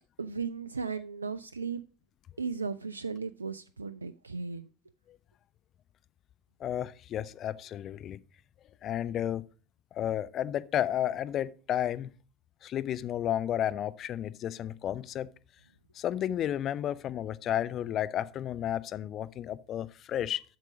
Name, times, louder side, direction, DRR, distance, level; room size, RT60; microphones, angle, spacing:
voice 1, 0.2-1.8 2.4-4.7, right 5 dB, 80° right, 0.3 m, -36 dB
voice 2, 6.6-8.2 8.8-9.4 9.9-12.1 12.6-15.3 15.9-20.4, left 11 dB, 40° left, 0.5 m, -32 dB
8.0 x 6.5 x 5.0 m
figure-of-eight pair, 75°, 0 cm